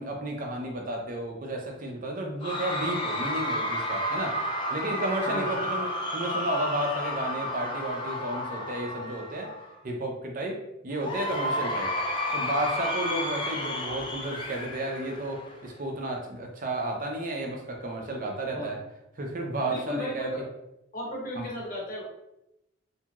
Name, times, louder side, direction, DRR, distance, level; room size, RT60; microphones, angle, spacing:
voice 1, 0.0-9.5 9.8-10.6 10.8-12.0 12.3-18.8 19.2-20.3, right 1 dB, 40° right, 1 dB, 0.5 m, -32 dB
Cheering / Crowd, 2.4-9.7 11.0-15.7, left 1 dB, 25° left, 0.3 m, -31 dB
voice 2, 5.3-5.6 18.5-18.8 19.7-20.4 20.9-22.0, equal, 45° left, -2 dB, 0.8 m, -35 dB
2.8 x 2.6 x 2.4 m, 0.88 s
head